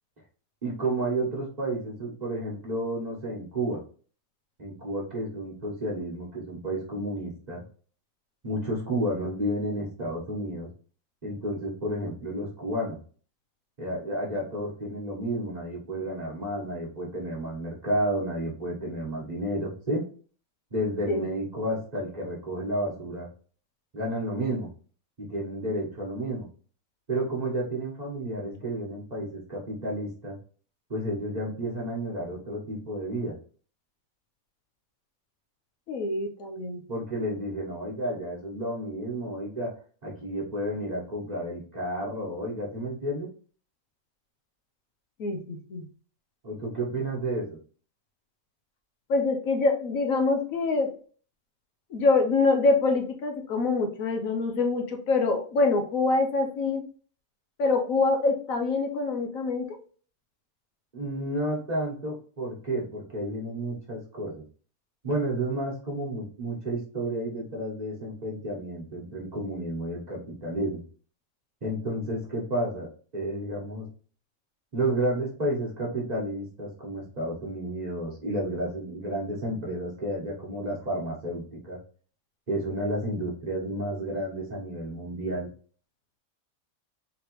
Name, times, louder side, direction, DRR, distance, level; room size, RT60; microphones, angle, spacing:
voice 1, 0.6-3.8 4.6-7.6 8.4-10.7 11.2-13.0 13.8-20.0 20.7-23.3 23.9-24.7 25.2-26.4 27.1-30.4 30.9-33.3 36.9-39.7 40.0-43.3 46.4-47.6 60.9-64.4 65.0-70.8 71.6-73.9 74.7-81.8 82.5-85.5, right 1 dB, 30° right, -4 dB, 1.3 m, -31 dB
voice 2, 35.9-36.8 45.2-45.8 49.1-50.9 51.9-56.8 57.6-59.8, left 3 dB, 70° left, 4 dB, 1.1 m, -25 dB
4.2 x 3.2 x 3.0 m, 0.42 s
omnidirectional pair, 1.5 m